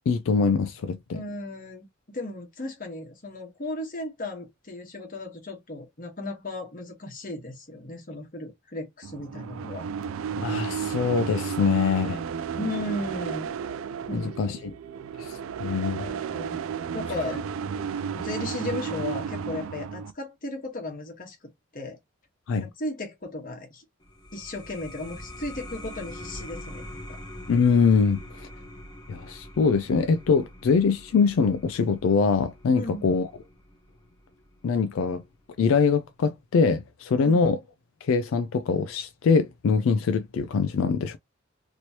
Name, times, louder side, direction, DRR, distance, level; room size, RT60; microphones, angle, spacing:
voice 1, 0.0-1.2 10.4-12.2 14.1-14.7 15.2-16.0 22.5-22.7 27.5-28.5 29.1-33.3 34.6-35.2 35.6-37.6 38.0-41.2, left 5 dB, 80° left, 0.3 m, -23 dB
voice 2, 1.1-9.9 12.6-13.5 14.1-14.6 16.0-16.6 16.9-17.4 18.1-21.4 21.7-22.0 22.5-23.8 24.3-27.2 32.7-33.1 37.1-37.4, left 2 dB, 45° left, 1.2 m, -35 dB
sound 1, 9.0-20.1, right 7 dB, 90° right, 0.4 m, -33 dB
sound 2, 24.0-35.2, left 1 dB, 20° left, 1.0 m, -44 dB
3.0 x 2.9 x 2.8 m
head